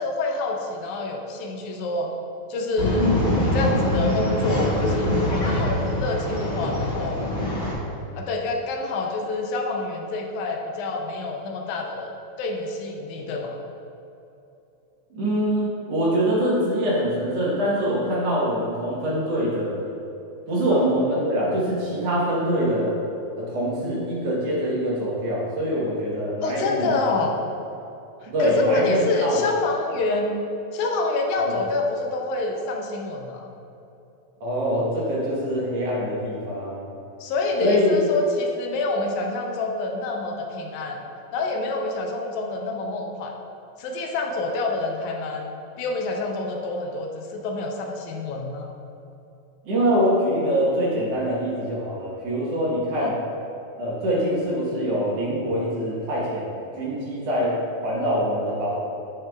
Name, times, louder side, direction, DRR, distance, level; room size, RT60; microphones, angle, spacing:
voice 1, 0.0-2.1 2.5-3.2 3.5-7.2 8.1-12.1 12.4-13.6 20.7-20.9 26.4-27.3 28.2-30.4 30.7-33.5 37.2-41.0 41.3-43.3 43.8-48.7 53.0-53.2, left 2 dB, 85° left, 2 dB, 2.1 m, -27 dB
Male speech man speaking / Chatter / Rattle, 2.8-7.7, left 1 dB, 35° left, 1.3 m, -24 dB
voice 2, 15.1-19.7 20.5-22.9 23.4-27.1 28.3-29.4 34.4-36.9 37.6-37.9 49.6-53.1 53.8-57.6 57.8-58.8, equal, 60° right, -6 dB, 2.1 m, -24 dB
7.3 x 6.6 x 2.3 m, 2.8 s
omnidirectional pair, 3.4 m